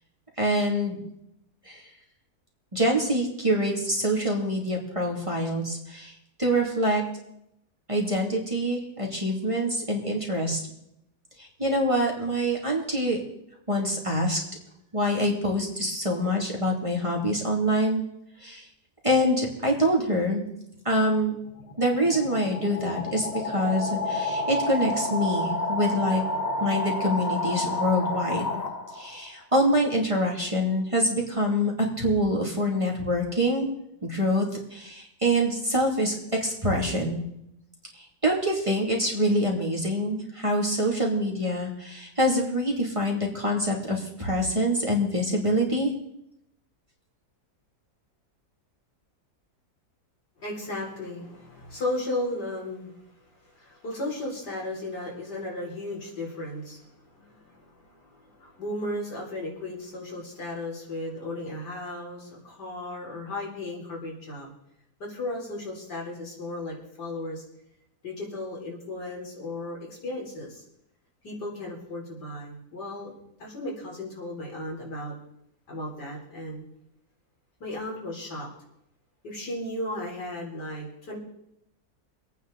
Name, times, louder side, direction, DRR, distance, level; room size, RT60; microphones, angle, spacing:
voice 1, 0.4-1.0 1.6-1.9 2.7-7.0 7.9-10.6 11.4-13.2 13.7-14.4 14.9-18.0 18.4-18.7 19.0-20.4 20.8-21.3 21.8-26.2 26.6-28.5 28.9-31.7 32.0-33.7 34.0-34.4 34.7-36.1 36.4-37.2 37.9-45.9, equal, 20° right, -1 dB, 2.6 m, -25 dB
sound 1, 21.5-29.3, left 1 dB, 30° left, 1.0 m, -30 dB
voice 2, 50.4-52.9 53.4-64.5 65.0-67.4 68.0-70.6 71.2-73.1 73.4-75.1 75.7-76.6 77.6-78.5 79.2-81.2, left 1 dB, 80° left, -3 dB, 4.4 m, -35 dB
25.0 x 9.2 x 4.0 m, 0.80 s
omnidirectional pair, 1.8 m